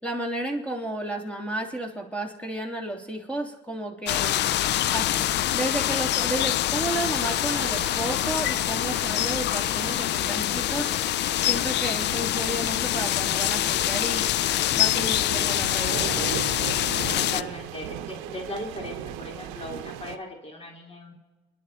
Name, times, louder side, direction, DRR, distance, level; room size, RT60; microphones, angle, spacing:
voice 1, 0.0-4.4 4.9-5.2 5.5-10.9 11.5-14.3 14.7-16.2, right 1 dB, 5° left, 2 dB, 3.1 m, -32 dB
sound 1, 4.1-17.4, left 13 dB, 60° left, 0.5 m, -25 dB
sound 2, 6.9-20.2, right 12 dB, 85° right, 0.8 m, -39 dB
voice 2, 15.3-15.7 17.1-21.1, left 1 dB, 30° left, 1 dB, 3.2 m, -39 dB
30.0 x 11.0 x 4.3 m, 1.3 s
supercardioid pair, 70°, 20 cm